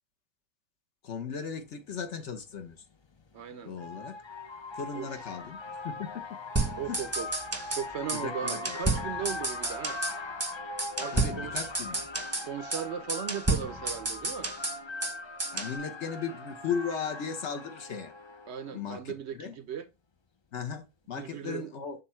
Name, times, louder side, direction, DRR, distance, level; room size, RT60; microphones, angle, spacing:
voice 1, 1.0-2.8 3.6-4.2 4.7-6.3 6.9-7.0 8.1-8.6 11.1-12.0 15.5-18.1 18.7-19.6 20.5-22.0, left 6 dB, 60° left, 1.2 m, -36 dB
sound 1, 3.1-18.7, left 2 dB, 45° left, 0.3 m, -40 dB
voice 2, 3.3-3.7 4.9-5.4 6.8-7.3 7.7-10.0 11.0-11.6 12.4-14.5 18.5-19.9 21.1-21.7, right 8 dB, 65° right, 0.7 m, -37 dB
sound 2, 6.6-7.8 8.1-8.2 8.5-10.2 10.4-10.5 10.8-12.5 12.7-12.8 13.1-15.1 15.4-15.7, right 3 dB, 15° right, 0.8 m, -31 dB
6.7 x 3.5 x 4.3 m
omnidirectional pair, 1.4 m